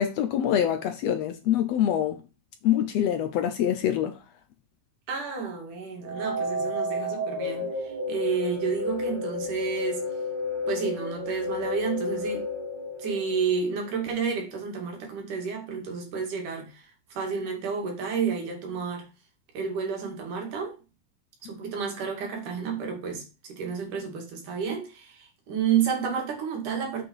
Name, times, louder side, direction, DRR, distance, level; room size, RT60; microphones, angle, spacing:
voice 1, 0.0-2.2 2.6-4.2, left 10 dB, 70° left, 1.7 m, -25 dB
voice 2, 5.1-10.1 10.7-12.4 13.0-19.1 19.5-20.8 21.4-27.0, right 6 dB, 80° right, 3.8 m, -30 dB
sound 1, 6.0-14.0, left 2 dB, 60° right, 3.4 m, -32 dB
7.8 x 6.6 x 4.6 m
omnidirectional pair, 3.5 m